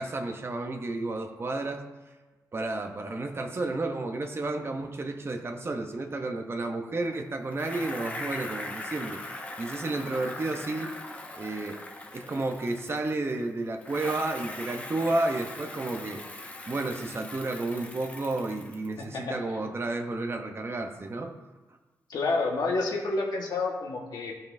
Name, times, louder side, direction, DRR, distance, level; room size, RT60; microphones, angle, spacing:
voice 1, 0.0-1.8 2.5-9.2 9.6-11.0 11.3-11.8 12.1-16.2 16.7-21.3, right 2 dB, 40° right, 4 dB, 0.9 m, -31 dB
Bicycle, 7.5-13.4 13.8-19.0, left 2 dB, 20° left, 0.9 m, -40 dB
voice 2, 19.0-19.4 22.1-24.3, left 3 dB, 80° left, 0 dB, 1.4 m, -29 dB
14.0 x 5.4 x 2.7 m, 1.2 s
wide cardioid pair, 100°, 7 cm